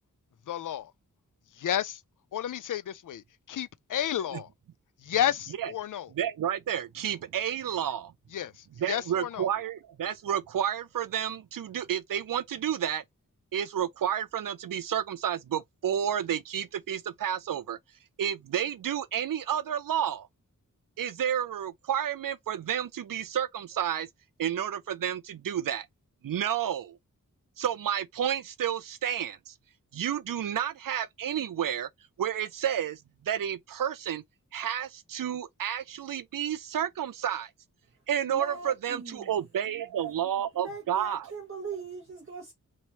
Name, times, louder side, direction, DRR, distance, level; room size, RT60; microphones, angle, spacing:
voice 1, 0.5-0.9 1.6-2.0 2.3-4.5 5.0-6.1 8.3-9.5, left 10 dB, 70° left, 0.5 m, -31 dB
voice 2, 6.1-8.1 8.8-13.0 13.5-17.8 18.2-20.3 21.0-24.1 24.4-25.9 26.2-27.0 27.6-29.5 29.9-31.9 32.2-34.2 34.5-37.5 38.1-41.2, right 9 dB, 80° right, 0.5 m, -31 dB
voice 3, 38.2-39.3 40.5-42.5, right 4 dB, 40° right, 1.2 m, -40 dB
3.1 x 2.9 x 2.8 m
wide cardioid pair, 105°, 33 cm